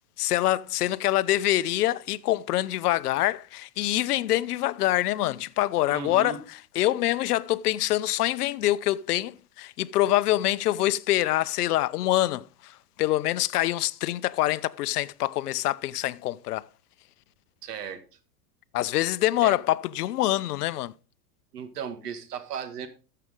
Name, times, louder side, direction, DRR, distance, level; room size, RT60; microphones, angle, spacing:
voice 1, 0.2-6.4 6.8-16.7 18.7-20.9, left 15 dB, 70° left, 0.7 m, -25 dB
voice 2, 5.9-6.4 17.6-18.0 19.4-19.5 21.5-22.9, right 7 dB, 70° right, 2.0 m, -35 dB
13.5 x 6.8 x 3.6 m
hypercardioid pair, 125°, 48 cm